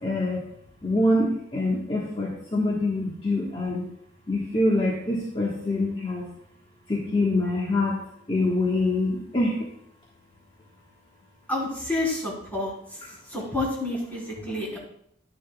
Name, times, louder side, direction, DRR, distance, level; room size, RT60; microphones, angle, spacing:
voice 1, 0.0-0.4 0.8-3.9 4.3-6.3 6.9-8.0 8.3-9.6, left 2 dB, 30° left, -4 dB, 1.4 m, -25 dB
voice 2, 11.5-13.0 13.3-14.8, left 2 dB, 10° left, -4 dB, 3.7 m, -29 dB
11.0 x 10.0 x 2.3 m, 0.70 s
head